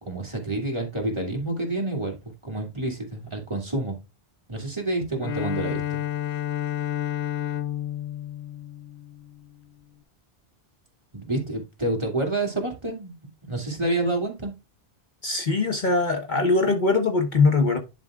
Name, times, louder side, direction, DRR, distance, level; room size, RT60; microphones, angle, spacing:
voice 1, 0.0-2.2 2.4-4.0 4.5-6.0 11.1-13.1 13.4-14.5, right 2 dB, 25° right, 2.4 m, -28 dB
Bowed string instrument, 5.2-9.5, left 11 dB, 65° left, 0.7 m, -30 dB
voice 2, 15.2-17.8, left 3 dB, 45° left, 1.2 m, -21 dB
10.5 x 5.2 x 2.4 m
omnidirectional pair, 1.1 m